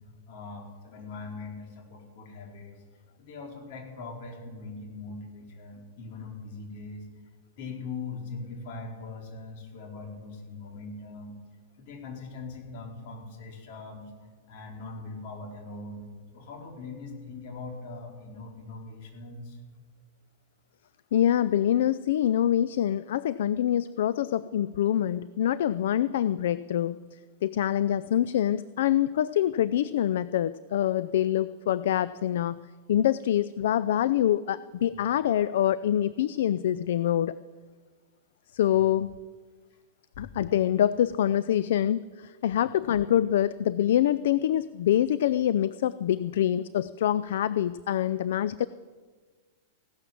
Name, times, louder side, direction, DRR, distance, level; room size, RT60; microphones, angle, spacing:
voice 1, 0.3-2.7 3.2-7.1 7.6-11.4 11.8-16.1 16.3-19.6 40.2-40.3 42.6-42.7, left 3 dB, 55° left, 1 dB, 4.3 m, -41 dB
voice 2, 21.1-27.0 27.4-32.6 32.9-37.3 38.5-39.1 40.2-48.7, left 11 dB, 70° left, 18 dB, 0.4 m, -25 dB
16.5 x 12.0 x 7.2 m, 1.5 s
hypercardioid pair, 135°, 0 cm